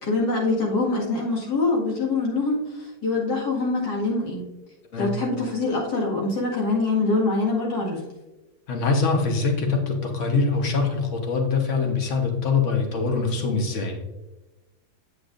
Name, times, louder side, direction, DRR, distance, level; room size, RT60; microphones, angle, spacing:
voice 1, 0.0-4.4 5.0-8.0, left 3 dB, 80° left, -4 dB, 2.6 m, -24 dB
voice 2, 8.7-14.0, left 4 dB, 50° left, 3 dB, 1.4 m, -23 dB
8.3 x 7.8 x 2.6 m, 1.1 s
omnidirectional pair, 1.8 m